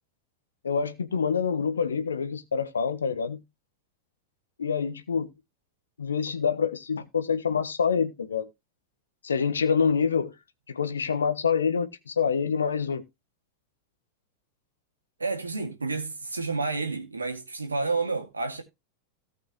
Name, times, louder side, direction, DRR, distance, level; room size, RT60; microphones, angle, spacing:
voice 1, 0.6-3.4 4.6-5.3 6.0-8.5 9.2-10.3 10.7-13.0, left 6 dB, 70° left, 1.2 m, -26 dB
voice 2, 15.2-18.6, right 3 dB, 80° right, 2.1 m, -30 dB
17.5 x 5.9 x 3.0 m
figure-of-eight pair, 90°, 0 cm